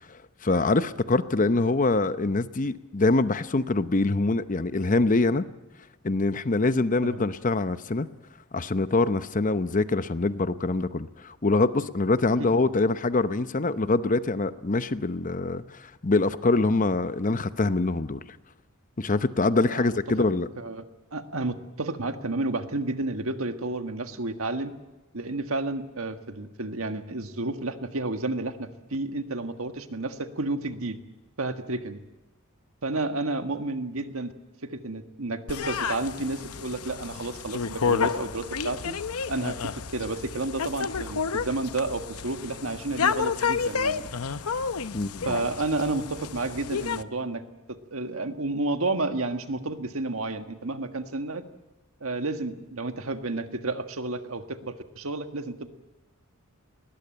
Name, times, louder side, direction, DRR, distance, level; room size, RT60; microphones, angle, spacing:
voice 1, 0.4-5.4 6.0-8.1 8.5-15.6 16.0-18.2 19.0-20.5 44.9-45.3, left 3 dB, 35° left, 13 dB, 0.8 m, -24 dB
voice 2, 19.6-20.3 20.6-20.9 21.1-24.7 25.1-31.0 31.4-32.0 32.8-34.3 34.6-39.0 39.3-39.6 39.9-44.1 45.2-47.4 47.9-51.4 52.0-55.7, right 2 dB, 70° right, 7 dB, 1.6 m, -31 dB
sound 1, 35.5-47.0, left 6 dB, 85° left, 0.8 m, -30 dB
20.5 x 19.5 x 9.0 m, 1.0 s
head